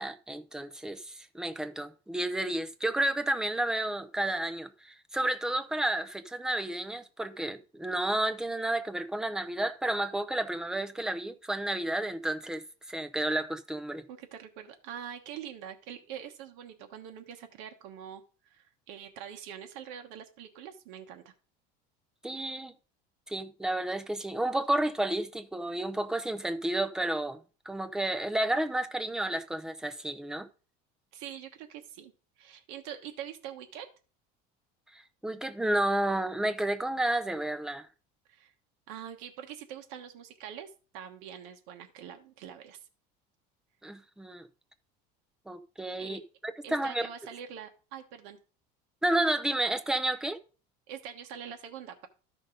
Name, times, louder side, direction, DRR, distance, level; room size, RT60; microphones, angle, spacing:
voice 1, 0.0-14.1 22.2-22.7 23.3-27.4 27.7-30.5 34.9-37.9 43.8-44.4 45.5-47.1 49.0-50.4, right 1 dB, 5° right, 0.5 m, -31 dB
voice 2, 14.1-21.3 31.1-33.9 38.3-38.5 38.9-42.8 46.0-46.2 46.6-48.4 50.9-52.1, right 9 dB, 70° right, 1.2 m, -44 dB
13.0 x 5.2 x 3.8 m
cardioid pair, 160°, 21 cm